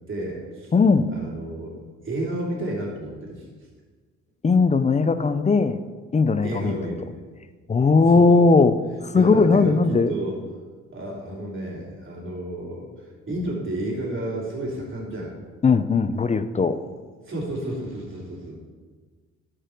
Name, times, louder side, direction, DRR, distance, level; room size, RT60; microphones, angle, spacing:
voice 1, 0.1-0.7 1.1-1.8 2.0-3.4 6.4-7.1 8.1-8.4 9.1-10.4 10.9-15.3 16.7-16.9 17.2-18.7, right 1 dB, 40° right, -3 dB, 3.0 m, -31 dB
voice 2, 0.7-1.1 4.4-5.8 6.1-6.8 7.7-10.1 15.6-16.8, left 4 dB, 25° left, 12 dB, 0.5 m, -18 dB
12.0 x 5.1 x 4.5 m, 1.5 s
cardioid pair, 90°, 30 cm